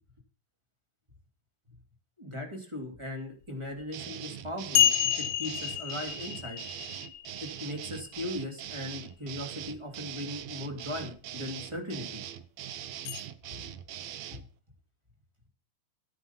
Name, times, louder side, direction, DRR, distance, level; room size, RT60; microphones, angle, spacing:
voice 1, 2.2-4.9 5.4-6.6 7.4-12.2, left 1 dB, 10° right, 3 dB, 2.1 m, -38 dB
sound 1, 3.8-3.9 4.7-8.4 13.0-13.2, left 11 dB, 70° left, 2.2 m, -29 dB
sound 2, 3.9-14.4, right 11 dB, 75° right, 1.6 m, -42 dB
13.0 x 9.2 x 5.8 m, 0.40 s
omnidirectional pair, 3.9 m